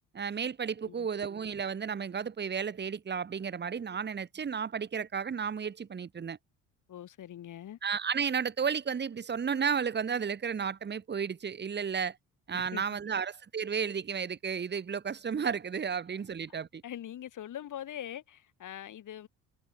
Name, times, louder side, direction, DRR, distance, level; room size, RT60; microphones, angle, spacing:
voice 1, 0.1-6.4 7.8-12.2 12.5-16.8, right 6 dB, 30° right, 1.2 m, -33 dB
voice 2, 6.9-7.8 12.5-12.8 16.8-19.3, left 11 dB, 55° left, 3.2 m, -42 dB
hypercardioid pair, 65°, 36 cm